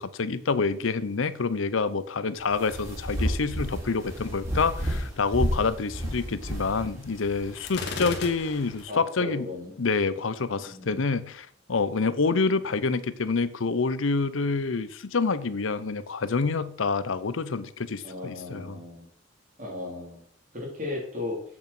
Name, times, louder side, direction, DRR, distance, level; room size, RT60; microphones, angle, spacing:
voice 1, 0.0-9.5 9.8-18.8, left 4 dB, 80° left, 0.7 m, -27 dB
sound 1, 2.4-8.8, equal, 15° right, 3.7 m, -32 dB
Gunshot gunfire, 7.7-8.9, left 3 dB, 55° left, 1.8 m, -35 dB
voice 2, 8.9-9.7 10.6-11.0 18.0-19.1 19.6-20.2 20.5-21.4, left 2 dB, 40° right, 3.6 m, -36 dB
8.0 x 7.2 x 6.0 m
head